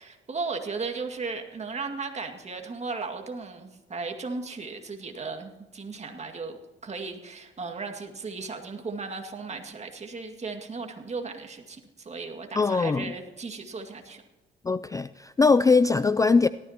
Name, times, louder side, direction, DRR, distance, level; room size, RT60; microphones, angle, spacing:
voice 1, 0.0-14.2, right 4 dB, 35° right, 4 dB, 2.1 m, -36 dB
voice 2, 12.6-13.1 14.6-16.5, left 4 dB, 15° left, 15 dB, 0.3 m, -21 dB
18.5 x 13.5 x 2.9 m, 1.1 s
cardioid pair, 90°, 20 cm